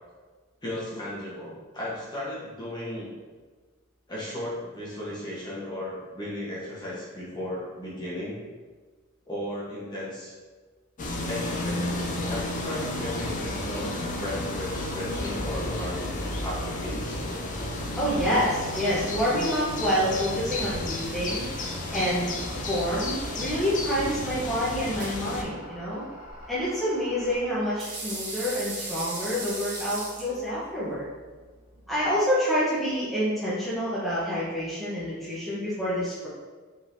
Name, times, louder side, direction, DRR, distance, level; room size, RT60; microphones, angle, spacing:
voice 1, 0.6-3.1 4.1-8.4 9.2-10.3 11.3-13.9 14.2-16.1 16.4-17.2, left 1 dB, 20° left, -7 dB, 1.1 m, -35 dB
sound 1, 11.0-25.4, left 1 dB, 40° left, 0.5 m, -32 dB
voice 2, 18.0-21.5 21.9-22.3 22.7-26.0 26.5-31.1 31.9-36.3, equal, ahead, -11 dB, 0.9 m, -27 dB
Brush Teeth and Spit, 18.4-32.2, right 2 dB, 55° right, 1.1 m, -42 dB
sound 2, 21.2-27.4, left 1 dB, 90° left, 1.1 m, -47 dB
4.6 x 3.8 x 2.7 m, 1.4 s
head